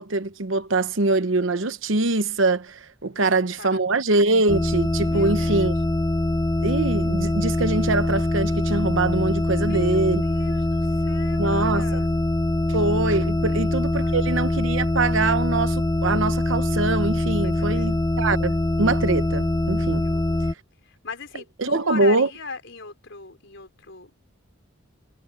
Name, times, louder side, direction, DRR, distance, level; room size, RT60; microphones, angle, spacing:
voice 1, 0.0-5.7 6.6-10.2 11.4-12.0 12.7-20.1 21.6-22.3, right 3 dB, 70° right, 1.0 m, -23 dB
sound 1, 4.5-20.5, left 1 dB, 20° left, 0.5 m, -23 dB
voice 2, 5.1-5.7 9.6-12.1 13.2-14.2 17.4-18.0 20.0-20.5 20.8-24.1, left 4 dB, 65° left, 5.0 m, -39 dB
head